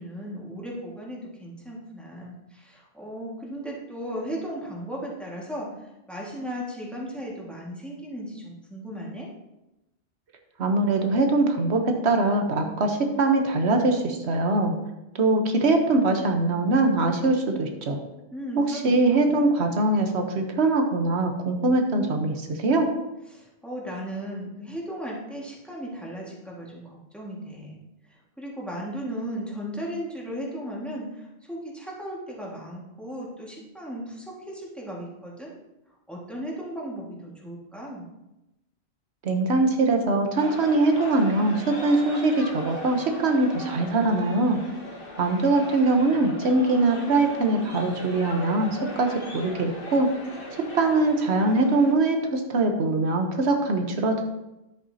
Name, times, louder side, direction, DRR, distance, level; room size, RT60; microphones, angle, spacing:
voice 1, 0.0-5.7 6.1-9.3 18.3-19.4 23.3-27.8 28.1-35.5 36.1-38.1, equal, ahead, -4 dB, 1.7 m, -36 dB
voice 2, 10.6-14.8 15.1-18.0 18.6-22.9 39.2-44.6 45.2-50.1 50.7-54.2, right 2 dB, 85° right, 4 dB, 1.3 m, -22 dB
sound 1, 40.3-51.9, left 1 dB, 60° left, 1.7 m, -39 dB
10.5 x 7.9 x 2.8 m, 0.96 s
omnidirectional pair, 1.1 m